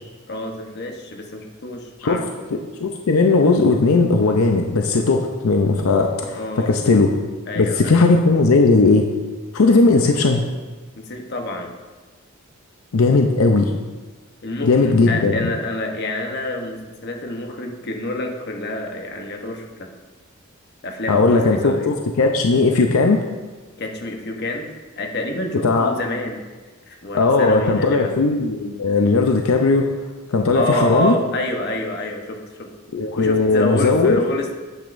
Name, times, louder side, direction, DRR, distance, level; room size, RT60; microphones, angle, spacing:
voice 1, 0.3-2.2 6.4-6.7 7.5-8.0 11.0-11.7 14.4-19.9 20.8-21.9 23.8-26.4 26.9-28.1 30.5-32.4 33.2-34.5, left 1 dB, 50° left, 2 dB, 1.0 m, -27 dB
voice 2, 2.5-7.1 7.6-9.1 9.5-10.4 12.9-13.7 14.6-15.5 21.1-23.2 25.6-25.9 27.1-29.9 30.3-31.1 32.9-34.2, left 3 dB, 80° left, 3 dB, 0.6 m, -17 dB
9.1 x 8.1 x 2.6 m, 1.3 s
head